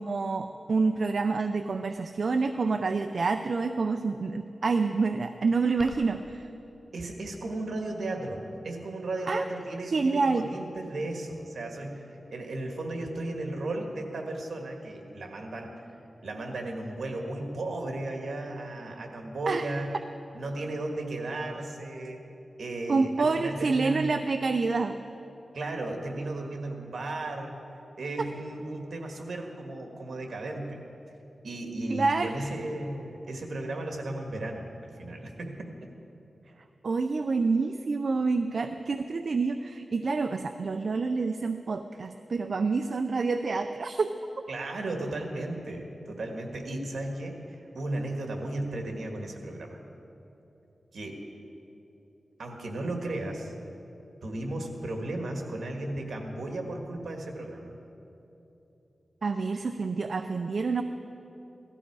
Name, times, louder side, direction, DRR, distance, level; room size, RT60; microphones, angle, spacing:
voice 1, 0.0-6.5 9.3-9.4 9.9-10.5 19.5-19.6 22.9-25.0 31.9-32.5 36.8-44.1 59.2-60.8, right 4 dB, 65° right, 7 dB, 0.5 m, -27 dB
sound 1, 5.8-6.3, equal, 5° left, 0.9 m, -45 dB
voice 2, 6.9-15.8 16.2-19.9 20.3-22.2 22.6-24.1 25.5-27.5 28.0-30.8 31.4-35.7 44.5-49.8 50.9-51.2 52.4-53.5 54.2-57.7, right 2 dB, 80° right, 3 dB, 1.7 m, -35 dB
17.0 x 14.0 x 4.7 m, 3.0 s
wide cardioid pair, 90°, 0 cm